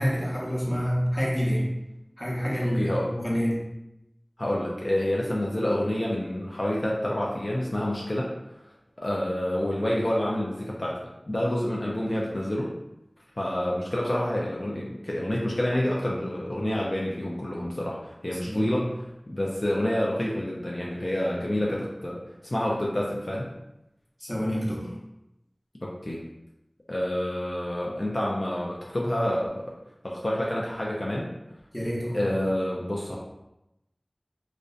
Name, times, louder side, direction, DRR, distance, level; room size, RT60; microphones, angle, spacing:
voice 1, 0.0-1.8 2.2-3.6 18.4-18.9 24.2-25.0 31.7-32.2, equal, 20° left, -5 dB, 0.7 m, -27 dB
voice 2, 2.7-3.1 4.4-8.3 9.0-11.0 11.3-12.7 13.4-18.9 19.3-22.2 22.5-23.5 25.8-26.2 26.9-29.7 30.0-31.3 32.1-33.2, left 1 dB, 60° left, -4 dB, 0.3 m, -28 dB
2.6 x 2.0 x 2.4 m, 0.88 s
wide cardioid pair, 45°, 0 cm